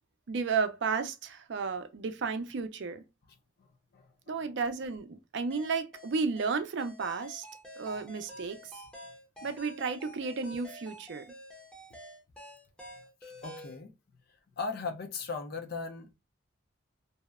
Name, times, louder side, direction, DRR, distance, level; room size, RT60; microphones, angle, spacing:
voice 1, 0.3-3.0 4.3-7.5 7.8-8.6 9.4-11.2, right 5 dB, 60° right, 0.4 m, -33 dB
voice 2, 3.9-4.4 13.2-13.9 14.6-16.1, left 4 dB, 50° left, 0.5 m, -38 dB
sound 1, 5.5-13.8, left 1 dB, 5° left, 0.6 m, -49 dB
2.7 x 2.1 x 2.3 m
head